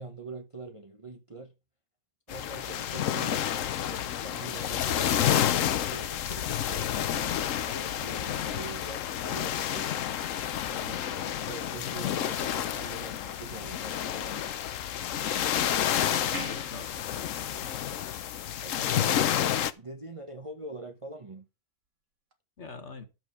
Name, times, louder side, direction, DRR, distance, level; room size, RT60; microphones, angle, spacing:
voice 1, 0.0-1.5 2.3-10.0 10.7-14.6 18.6-19.4 19.8-21.5, right 2 dB, 25° right, 0.9 m, -44 dB
sound 1, 2.3-19.7, left 10 dB, 65° left, 1.0 m, -30 dB
sound 2, 7.1-9.7 12.6-13.5 16.3-19.3 22.3-22.4, right 3 dB, 55° right, 1.9 m, -48 dB
voice 2, 16.3-17.7 22.6-23.0, left 4 dB, 50° left, 1.9 m, -44 dB
11.5 x 7.6 x 5.0 m
omnidirectional pair, 1.6 m